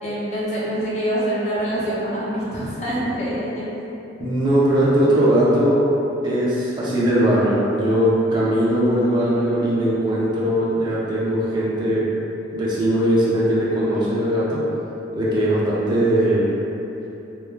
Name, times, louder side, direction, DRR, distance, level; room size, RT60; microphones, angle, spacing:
voice 1, 0.0-3.7, right 1 dB, 35° left, -9 dB, 0.6 m, -25 dB
voice 2, 4.2-5.9 6.2-12.1 12.5-14.6 15.1-16.5, right 1 dB, 20° right, -7 dB, 0.4 m, -19 dB
3.2 x 2.1 x 2.2 m, 3.0 s
head